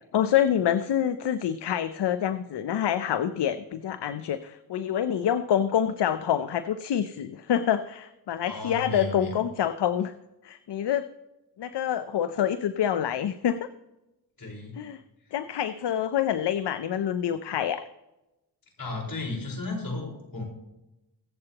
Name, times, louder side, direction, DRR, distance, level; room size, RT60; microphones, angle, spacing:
voice 1, 0.1-10.1 10.4-11.1 11.6-13.7 14.8-15.0 15.3-17.8, left 9 dB, 75° left, 11 dB, 0.7 m, -26 dB
voice 2, 8.4-9.4 14.4-14.8 18.8-20.4, left 2 dB, 55° left, -1 dB, 4.7 m, -34 dB
23.0 x 7.7 x 2.9 m, 0.97 s
cardioid pair, 75°, 41 cm